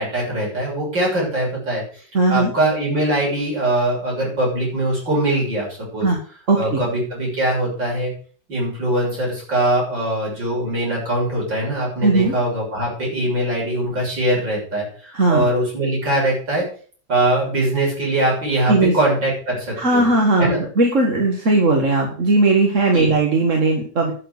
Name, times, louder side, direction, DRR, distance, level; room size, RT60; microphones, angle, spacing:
voice 1, 0.0-1.8 2.3-5.7 5.9-6.1 6.6-8.1 8.5-16.6 17.1-20.0 20.4-20.6 22.9-23.1, right 1 dB, 75° right, -4 dB, 7.5 m, -22 dB
voice 2, 2.1-2.5 6.0-6.2 6.5-6.8 12.0-12.3 15.1-15.4 18.7-18.9 19.8-24.1, right 2 dB, 45° right, 1 dB, 2.0 m, -17 dB
11.0 x 6.9 x 6.7 m, 0.43 s
omnidirectional pair, 2.0 m